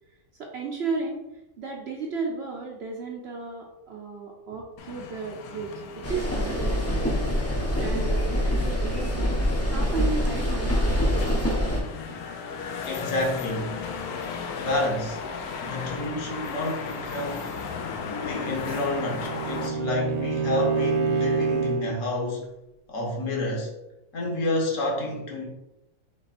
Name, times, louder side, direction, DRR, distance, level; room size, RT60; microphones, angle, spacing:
voice 1, 0.4-1.2 1.6-7.0 7.8-11.6, right 4 dB, 60° right, -1 dB, 0.7 m, -34 dB
sound 1, 4.8-19.7, left 5 dB, 75° left, 1.1 m, -36 dB
sound 2, 6.0-11.8, equal, 15° left, 0.5 m, -25 dB
voice 2, 12.9-13.8 14.6-15.2 15.6-17.5 18.2-22.5 22.9-23.7 24.1-25.5, left 1 dB, 60° left, -1 dB, 1.3 m, -29 dB
Bowed string instrument, 18.1-22.0, right 5 dB, 75° right, 1.1 m, -28 dB
3.6 x 3.2 x 4.1 m, 0.93 s
omnidirectional pair, 1.6 m